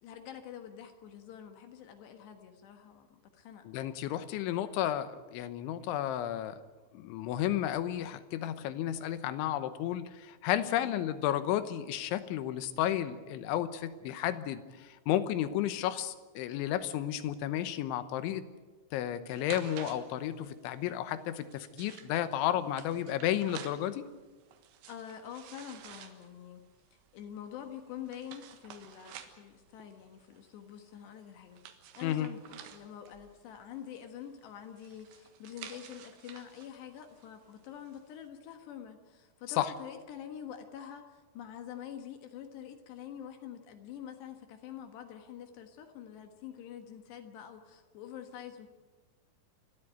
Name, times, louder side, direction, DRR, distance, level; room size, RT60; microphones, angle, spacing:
voice 1, 0.0-3.7 10.8-11.0 24.9-26.7 27.1-31.6 32.0-48.7, left 9 dB, 70° left, 6 dB, 3.4 m, -46 dB
voice 2, 3.7-6.6 6.9-18.5 18.9-24.1 32.0-32.3 39.6-39.7, left 12 dB, 90° left, 12 dB, 3.4 m, -32 dB
sound 1, 19.3-38.2, right 9 dB, 80° right, 3.7 m, -52 dB
29.5 x 12.5 x 9.2 m, 1.3 s
omnidirectional pair, 5.3 m